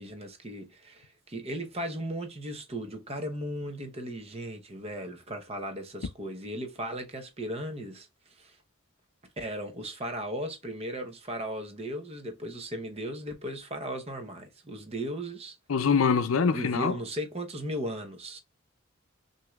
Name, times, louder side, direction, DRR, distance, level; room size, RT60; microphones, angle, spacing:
voice 1, 0.0-8.1 8.4-8.6 9.4-15.6 16.5-18.4, right 1 dB, 30° right, 0.9 m, -36 dB
voice 2, 15.7-17.0, left 5 dB, 80° left, 0.5 m, -24 dB
6.0 x 2.8 x 2.3 m
head